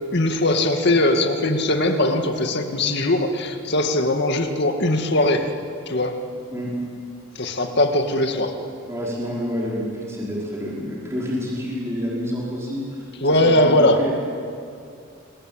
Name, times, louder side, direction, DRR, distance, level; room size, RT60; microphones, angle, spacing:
voice 1, 0.1-5.4 5.9-6.2 7.4-8.5 13.2-14.0, left 1 dB, 55° left, 5 dB, 2.3 m, -20 dB
voice 2, 8.9-14.2, equal, 15° right, -5 dB, 5.2 m, -28 dB
29.0 x 22.5 x 9.0 m, 2.4 s
head